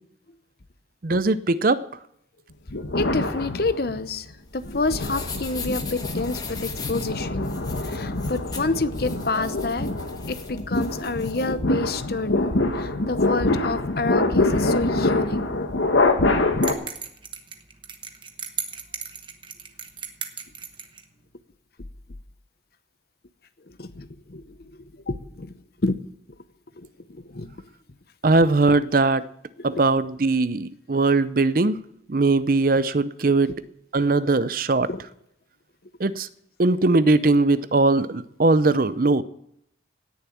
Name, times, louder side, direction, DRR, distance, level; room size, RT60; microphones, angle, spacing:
voice 1, 1.0-1.8 28.2-29.3 29.6-31.8 32.1-33.5 33.9-34.9 36.0-36.3 36.6-39.2, right 3 dB, 50° right, 16 dB, 0.6 m, -20 dB
sound 1, 2.7-4.1 4.6-16.7, left 2 dB, 80° left, 1.3 m, -25 dB
voice 2, 3.0-4.3 4.5-7.6 7.8-9.9 10.3-15.4 23.8-25.5 25.8-26.0 26.8-27.6 29.6-29.8 34.9-35.0, left 3 dB, 55° left, 13 dB, 0.8 m, -28 dB
sound 2, 4.4-11.5, left 4 dB, 20° left, 1.3 m, -38 dB
sound 3, 16.6-21.0, right 7 dB, 25° right, 1.1 m, -35 dB
17.5 x 7.0 x 8.5 m, 0.76 s
head